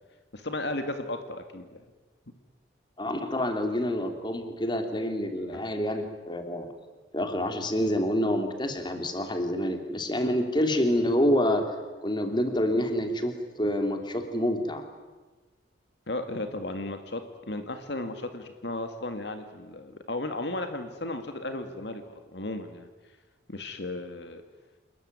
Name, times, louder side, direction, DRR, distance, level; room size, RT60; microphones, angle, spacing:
voice 1, 0.3-1.8 5.5-5.6 16.1-22.9 23.5-24.4, left 2 dB, 60° left, 7 dB, 2.0 m, -35 dB
voice 2, 3.0-6.7 7.1-11.6 12.0-14.8, equal, 25° left, 6 dB, 2.9 m, -27 dB
28.0 x 21.0 x 9.6 m, 1.3 s
head